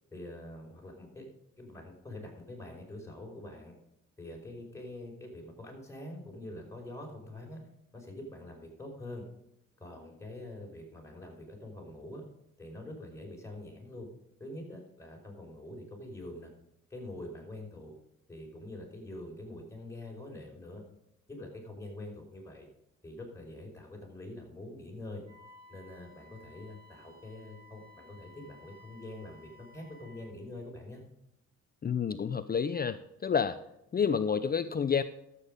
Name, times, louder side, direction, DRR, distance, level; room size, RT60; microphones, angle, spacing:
voice 1, 0.1-1.3 1.6-3.7 4.2-7.6 7.9-9.2 9.8-12.2 12.6-14.1 14.4-16.5 16.9-17.9 18.3-20.8 21.3-22.7 23.0-25.2 25.7-31.0, left 1 dB, 10° left, -1 dB, 5.0 m, -45 dB
Wind instrument woodwind instrument, 25.3-30.3, left 1 dB, 15° right, 5.2 m, -57 dB
voice 2, 31.8-33.6 33.9-35.0, left 6 dB, 30° left, 12 dB, 0.6 m, -29 dB
12.0 x 8.3 x 5.2 m, 0.82 s
cardioid pair, 90°, 30 cm